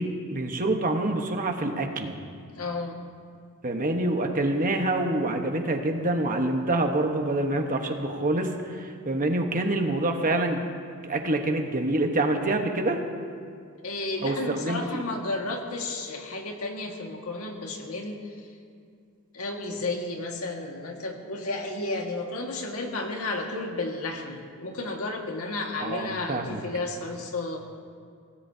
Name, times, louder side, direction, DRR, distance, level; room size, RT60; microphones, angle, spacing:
voice 1, 0.0-2.2 3.6-10.6 11.0-13.0 14.2-15.0 25.8-26.6, right 2 dB, 40° right, 4 dB, 1.3 m, -26 dB
voice 2, 2.5-3.1 13.8-18.5 19.3-27.6, left 2 dB, 85° left, 1 dB, 1.9 m, -32 dB
24.0 x 17.0 x 2.8 m, 2.3 s
head